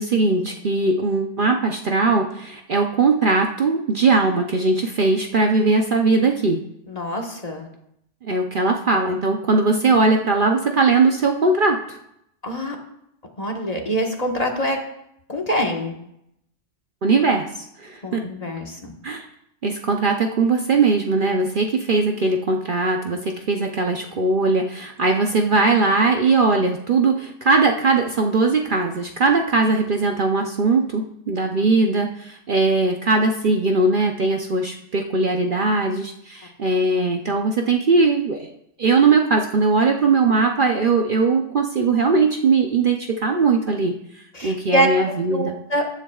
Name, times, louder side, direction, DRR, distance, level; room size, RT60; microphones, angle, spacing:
voice 1, 0.0-6.6 8.2-12.0 17.0-18.2 19.0-19.3 19.6-38.5 38.8-43.9 44.4-45.6, right 3 dB, 50° right, 3 dB, 0.8 m, -20 dB
voice 2, 6.9-7.7 12.4-12.8 13.4-14.8 15.3-16.0 18.0-18.9 44.3-44.9 45.3-45.8, equal, 35° left, 1 dB, 1.4 m, -24 dB
14.5 x 10.0 x 2.4 m, 0.77 s
omnidirectional pair, 1.2 m